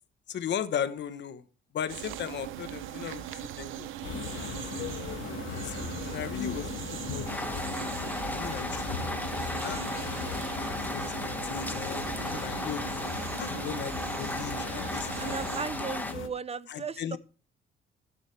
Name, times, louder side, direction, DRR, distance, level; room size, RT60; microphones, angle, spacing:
voice 1, 0.3-1.4 1.7-3.2 3.6-5.8 6.1-9.0 9.6-12.8 13.4-15.6 16.7-17.2, left 9 dB, 65° left, 1.0 m, -38 dB
sound 1, 1.9-15.7, right 12 dB, 80° right, 0.7 m, -40 dB
sound 2, 4.0-16.3, left 7 dB, 80° left, 1.5 m, -38 dB
sound 3, 7.3-16.1, left 1 dB, 10° left, 1.1 m, -36 dB
voice 2, 7.7-8.8 9.7-9.8 15.2-17.2, right 5 dB, 30° right, 0.6 m, -38 dB
13.0 x 9.7 x 3.3 m
cardioid pair, 90°, 20 cm